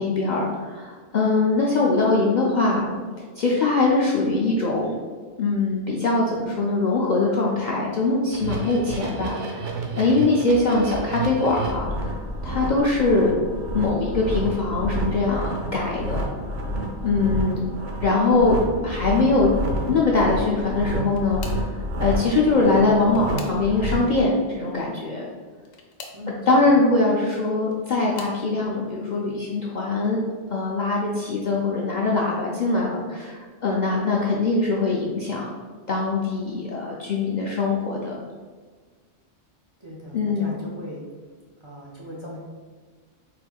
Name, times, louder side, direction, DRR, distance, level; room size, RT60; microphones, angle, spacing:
voice 1, 0.0-2.9 3.4-4.9 5.4-9.7 10.0-12.1 12.4-13.3 13.7-16.3 17.0-17.6 18.0-18.6 18.8-19.5 19.9-21.7 22.0-25.3 26.5-30.2 30.5-35.5 35.9-38.2 40.1-40.5, left 3 dB, 55° left, -4 dB, 0.5 m, -22 dB
sound 1, 8.3-24.2, right 1 dB, 85° right, 1.0 m, -30 dB
sound 2, 20.7-21.8 22.7-24.0 25.6-26.3 27.4-28.4 29.2-29.5 29.9-30.1 31.4-31.5, left 4 dB, 80° left, 1.0 m, -44 dB
voice 2, 26.1-26.7 39.8-41.0 41.6-42.4, equal, 30° right, -4 dB, 0.7 m, -38 dB
4.4 x 4.2 x 2.3 m, 1.5 s
omnidirectional pair, 1.2 m